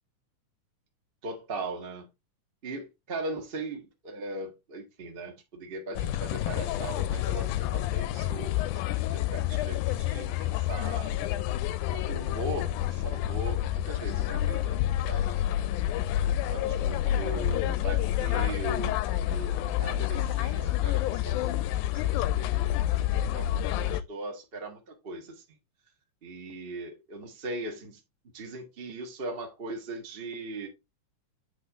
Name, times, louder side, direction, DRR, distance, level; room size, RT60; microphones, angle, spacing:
voice 1, 1.2-2.1 2.6-11.1 11.9-14.8 15.1-15.4 16.5-22.9 23.3-25.4 26.2-28.0 28.3-30.7, right 2 dB, 35° right, 0.9 m, -39 dB
sound 1, 6.0-24.0, left 12 dB, 80° left, 1.9 m, -28 dB
8.7 x 3.9 x 3.6 m
omnidirectional pair, 3.8 m